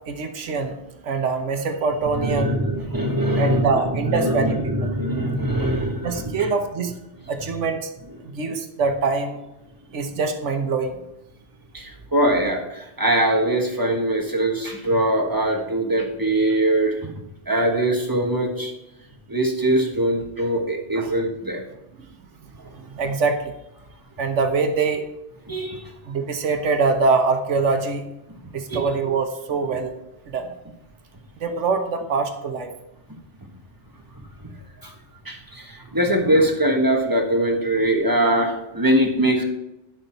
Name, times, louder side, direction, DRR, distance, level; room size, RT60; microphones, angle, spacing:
voice 1, 0.1-0.8 1.0-2.6 3.4-4.6 6.0-6.9 7.3-7.9 8.2-9.4 9.9-11.0 20.9-21.2 22.7-23.5 24.2-25.1 26.0-28.0 28.5-29.9 30.3-30.5 31.4-32.7, right 4 dB, 90° right, 6 dB, 1.3 m, -23 dB
voice 2, 2.2-3.7 3.9-6.5 11.7-17.1 17.5-18.7 19.3-21.6 25.5-25.8 28.7-28.8 34.1-34.2 34.8-34.9 35.2-39.4, right 1 dB, 20° right, 1 dB, 1.4 m, -22 dB
11.0 x 6.6 x 4.5 m, 0.90 s
omnidirectional pair, 1.2 m